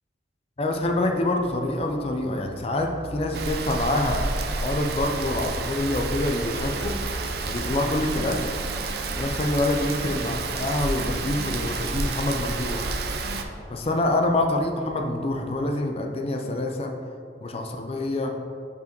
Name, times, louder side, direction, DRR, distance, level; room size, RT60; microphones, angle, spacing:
sound 1, 0.6-15.3, equal, 80° left, 1.2 m, -41 dB
voice 1, 0.6-7.0 7.4-8.5 9.2-12.9 13.7-16.9 17.4-18.3, left 1 dB, 30° left, 3 dB, 0.5 m, -26 dB
Rain, 3.3-13.4, right 3 dB, 55° right, 0.5 m, -30 dB
5.6 x 4.7 x 4.5 m, 2.5 s
head